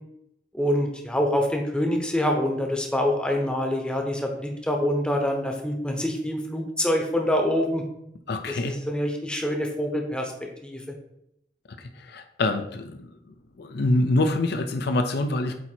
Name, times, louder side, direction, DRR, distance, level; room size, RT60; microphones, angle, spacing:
voice 1, 0.5-7.8 8.5-10.3 10.6-10.8, left 1 dB, 5° left, 2 dB, 0.8 m, -25 dB
voice 2, 8.3-8.8 11.7-13.1 13.6-15.6, left 2 dB, 65° left, 7 dB, 0.5 m, -25 dB
8.2 x 2.8 x 4.4 m, 0.79 s
head